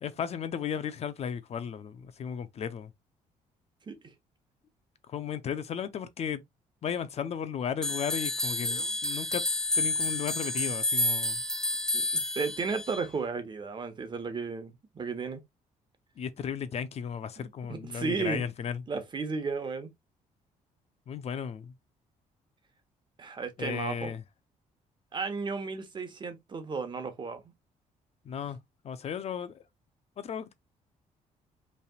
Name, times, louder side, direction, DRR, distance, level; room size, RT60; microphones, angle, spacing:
voice 1, 0.0-2.9 5.1-6.4 6.8-9.4 9.8-11.4 16.2-18.8 21.1-21.7 23.6-24.2 28.2-28.6 28.8-29.6 30.2-30.6, left 7 dB, 50° left, 0.6 m, -35 dB
sound 1, 7.8-13.0, left 1 dB, 5° left, 0.9 m, -30 dB
voice 2, 11.9-15.4 17.4-18.4 18.9-19.9 23.2-24.1 25.1-27.4, right 4 dB, 35° right, 1.2 m, -34 dB
5.4 x 3.3 x 2.3 m
cardioid pair, 115°, 14 cm